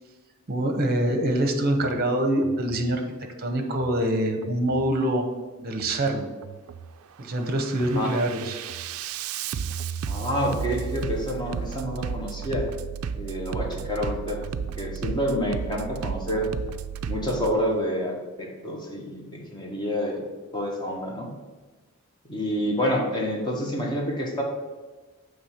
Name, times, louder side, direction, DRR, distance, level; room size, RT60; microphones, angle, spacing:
voice 1, 0.5-3.0 3.4-5.3 5.6-6.3 7.2-8.6, right 1 dB, 45° right, 4 dB, 0.8 m, -25 dB
Bass drum, 1.7-1.9 2.4-2.9 3.7-3.9 4.4-4.9 5.7-5.9 6.4-6.9 7.3-17.5, right 7 dB, 75° right, 0.3 m, -33 dB
voice 2, 10.1-12.7 13.2-14.4 14.8-16.5 17.0-20.2 20.5-21.3 22.3-24.4, equal, 20° left, -1 dB, 1.0 m, -28 dB
6.6 x 3.3 x 5.7 m, 1.3 s
head